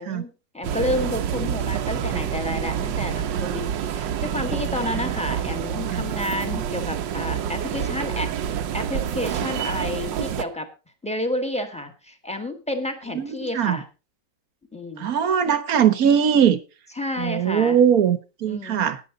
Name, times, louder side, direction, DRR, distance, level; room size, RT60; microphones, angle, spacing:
voice 1, 0.0-10.7 11.0-13.8 14.7-15.2 17.0-17.8 18.5-18.9, left 1 dB, 5° left, 1.7 m, -30 dB
sound 1, 0.6-10.4, right 9 dB, 80° right, 1.5 m, -27 dB
voice 2, 13.1-13.8 15.0-16.6 17.2-19.0, right 8 dB, 55° right, 1.5 m, -20 dB
13.5 x 10.0 x 3.9 m
omnidirectional pair, 2.0 m